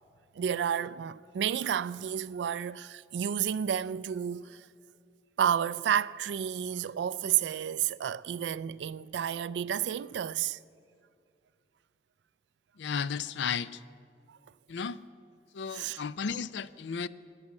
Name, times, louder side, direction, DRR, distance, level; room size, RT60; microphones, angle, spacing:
voice 1, 0.4-4.7 5.4-10.6 14.3-14.4 15.7-16.0, right 9 dB, 80° right, 0.3 m, -31 dB
voice 2, 12.8-13.8 14.7-15.0 15.5-17.1, left 6 dB, 85° left, 0.4 m, -34 dB
14.0 x 9.6 x 8.6 m
head